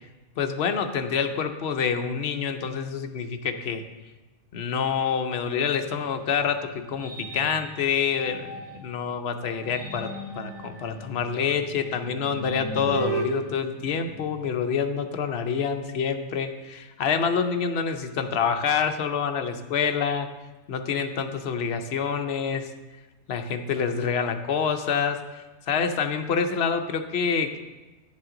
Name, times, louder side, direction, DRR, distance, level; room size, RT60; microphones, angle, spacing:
voice 1, 0.4-3.8 4.5-20.3 20.7-22.7 23.3-27.6, left 6 dB, 65° left, 7 dB, 0.9 m, -27 dB
sound 1, 6.2-8.9 9.5-14.6, right 1 dB, 5° left, 3.3 m, -37 dB
10.5 x 7.4 x 3.8 m, 1.2 s
omnidirectional pair, 1.2 m